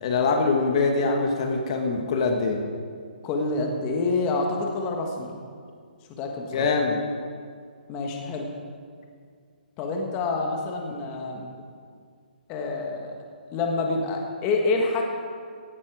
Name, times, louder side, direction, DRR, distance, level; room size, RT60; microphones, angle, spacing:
voice 1, 0.0-2.6 6.5-7.0, left 4 dB, 40° left, 4 dB, 1.3 m, -23 dB
voice 2, 3.2-5.4 6.2-6.7 7.9-8.5 9.8-11.5 12.5-13.2 13.5-15.0, left 3 dB, 20° left, 1 dB, 1.3 m, -27 dB
17.0 x 11.0 x 4.7 m, 2.1 s
hypercardioid pair, 165°, 5 cm